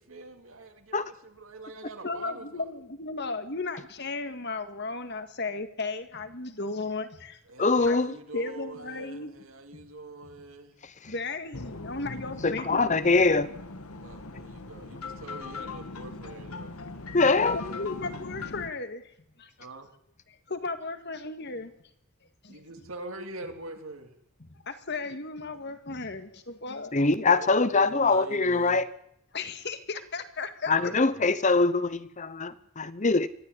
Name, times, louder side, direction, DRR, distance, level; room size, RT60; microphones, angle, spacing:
voice 1, 0.0-2.6 7.5-10.8 14.0-16.7 19.6-19.9 22.5-24.1 27.3-28.8 30.8-31.2, right 2 dB, 70° right, 3.2 m, -44 dB
voice 2, 2.0-7.4 7.8-9.4 9.7-9.9 10.3-10.4 11.0-13.2 17.5-19.0 19.4-19.5 20.3-21.7 22.4-22.9 24.4-27.0 29.3-30.9, left 3 dB, 50° left, 2.0 m, -35 dB
voice 3, 7.6-8.1 12.4-13.5 17.1-17.6 26.9-28.9 30.7-33.3, left 3 dB, 35° left, 0.8 m, -23 dB
sound 1, 11.5-18.7, left 3 dB, 90° left, 1.7 m, -40 dB
23.5 x 14.0 x 9.8 m
head